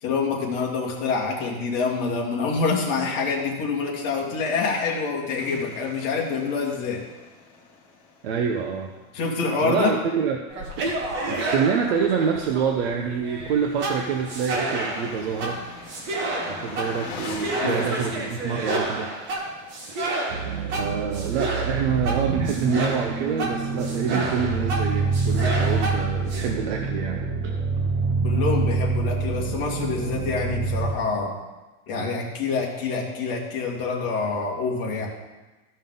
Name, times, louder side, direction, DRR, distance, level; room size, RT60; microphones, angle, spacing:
voice 1, 0.0-7.0 9.1-9.9 17.6-17.8 28.2-31.3 31.9-35.1, left 4 dB, 40° left, -2 dB, 2.1 m, -26 dB
sound 1, 5.4-9.2 13.4-21.0, left 4 dB, 55° left, 2.5 m, -43 dB
voice 2, 8.2-8.9 9.6-10.4 10.8-10.9 11.3-15.6 16.5-19.1 20.8-27.5, right 6 dB, 45° right, 2 dB, 0.7 m, -26 dB
sound 2, 10.5-26.5, right 2 dB, 25° right, 1.3 m, -30 dB
sound 3, 20.3-30.9, right 4 dB, 60° right, 1.1 m, -26 dB
14.5 x 5.3 x 3.8 m, 1.1 s
supercardioid pair, 175°, 42 cm